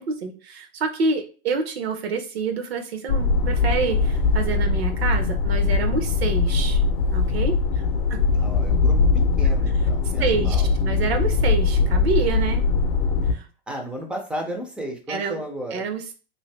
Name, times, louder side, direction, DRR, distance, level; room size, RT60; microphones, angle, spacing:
voice 1, 0.0-6.8 7.1-7.8 8.1-8.2 10.2-10.6 10.8-12.6 13.3-13.5 15.1-15.4 15.7-16.1, right 4 dB, 75° right, 7 dB, 0.8 m, -27 dB
sound 1, 3.1-13.3, left 4 dB, 60° left, 0.6 m, -21 dB
voice 2, 7.8-10.8 13.7-15.8, equal, 5° right, 1 dB, 0.4 m, -34 dB
2.7 x 2.6 x 3.1 m, 0.37 s
hypercardioid pair, 135°, 31 cm